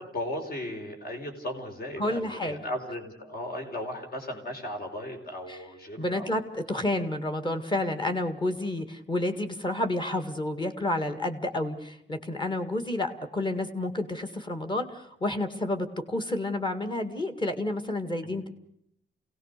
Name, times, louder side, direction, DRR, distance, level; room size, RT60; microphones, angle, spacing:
voice 1, 0.0-6.4 18.2-18.5, left 1 dB, 50° left, 4 dB, 4.3 m, -36 dB
voice 2, 2.0-2.6 5.5-5.6 6.0-18.5, left 1 dB, 25° left, 8 dB, 2.0 m, -30 dB
28.0 x 18.0 x 6.7 m, 0.71 s
wide cardioid pair, 180°, 21 cm